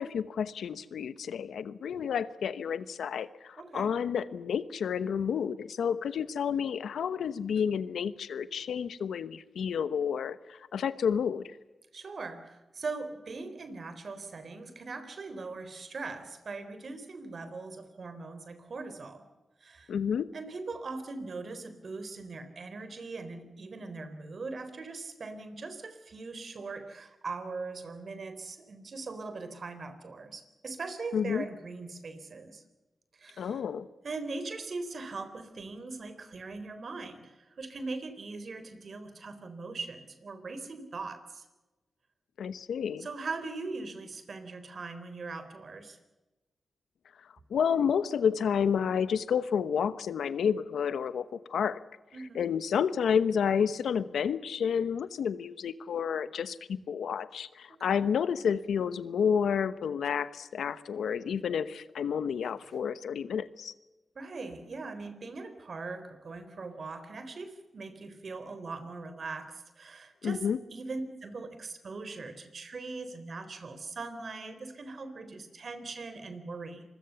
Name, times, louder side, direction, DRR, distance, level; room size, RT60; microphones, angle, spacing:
voice 1, 0.0-11.6 19.9-20.3 31.1-31.5 33.4-33.9 42.4-43.1 47.5-51.8 52.3-63.7 70.2-70.6, left 7 dB, 85° left, 14 dB, 1.0 m, -30 dB
voice 2, 3.6-3.9 11.9-19.2 19.6-19.9 20.3-32.6 33.2-33.6 34.0-41.4 43.0-46.0 52.1-52.4 57.7-58.0 64.2-76.8, right 3 dB, 60° right, 10 dB, 3.9 m, -40 dB
26.0 x 21.5 x 7.0 m, 1.1 s
cardioid pair, 50°, 0 cm